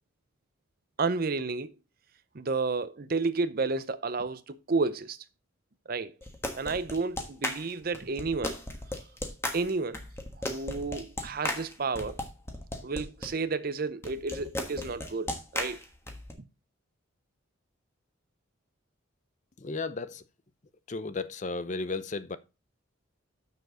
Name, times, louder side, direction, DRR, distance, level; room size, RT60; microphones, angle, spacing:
voice 1, 1.0-1.7 2.3-5.2 5.9-6.1 6.5-8.5 9.5-10.0 10.4-12.2 12.8-15.8, right 4 dB, 45° right, 0.6 m, -31 dB
sound 1, 6.2-13.3 14.0-16.3, left 1 dB, 15° left, 1.3 m, -36 dB
voice 2, 19.6-20.2 20.9-22.4, left 3 dB, 35° left, 0.5 m, -34 dB
7.1 x 6.5 x 5.0 m
head